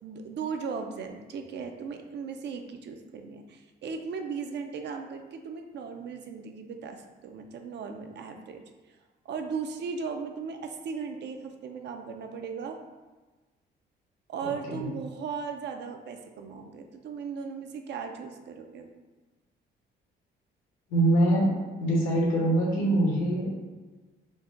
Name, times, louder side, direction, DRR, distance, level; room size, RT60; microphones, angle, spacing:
voice 1, 0.0-8.6 9.2-12.8 14.3-18.9, right 5 dB, 60° right, 5 dB, 0.5 m, -37 dB
voice 2, 14.4-14.9 20.9-21.5 21.8-23.5, right 1 dB, 90° left, -4 dB, 1.3 m, -24 dB
4.0 x 2.2 x 3.6 m, 1.3 s
cardioid pair, 90°, 20 cm